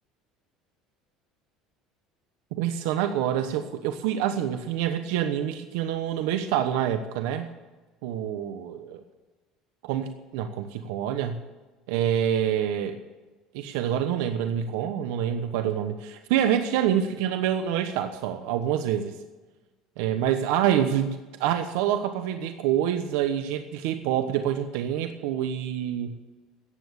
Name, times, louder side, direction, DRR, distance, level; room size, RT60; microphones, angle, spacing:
voice 1, 2.5-7.5 8.0-9.0 9.8-10.1 10.3-11.4 11.9-13.0 13.5-19.2 20.0-26.1, right 10 dB, 85° right, 8 dB, 1.1 m, -26 dB
14.5 x 9.6 x 6.9 m, 1.2 s
cardioid pair, 160°, 0 cm